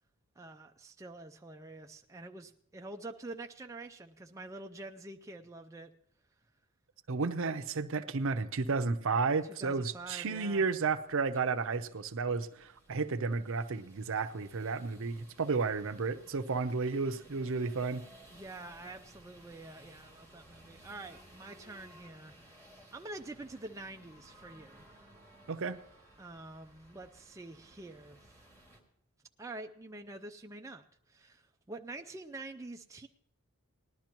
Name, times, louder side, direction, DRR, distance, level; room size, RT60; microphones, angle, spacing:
voice 1, 0.4-5.9 9.6-10.7 18.3-22.4 22.9-25.1 26.2-28.2 29.4-33.1, right 2 dB, 15° right, 4 dB, 0.4 m, -47 dB
voice 2, 7.1-18.0 25.5-25.8, right 4 dB, 60° right, 10 dB, 0.6 m, -32 dB
sound 1, 9.7-28.8, right 1 dB, 10° left, 2.1 m, -59 dB
19.0 x 12.0 x 3.0 m, 0.70 s
head